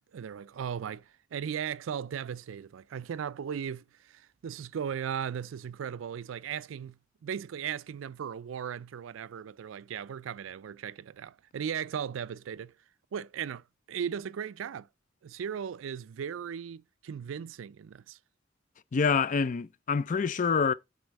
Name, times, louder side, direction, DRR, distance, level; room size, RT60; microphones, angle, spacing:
voice 1, 0.1-12.7 13.1-14.9 15.2-18.2, right 8 dB, 85° right, 0.4 m, -37 dB
voice 2, 18.9-20.7, left 5 dB, 40° left, 0.4 m, -26 dB
8.0 x 4.2 x 4.0 m
head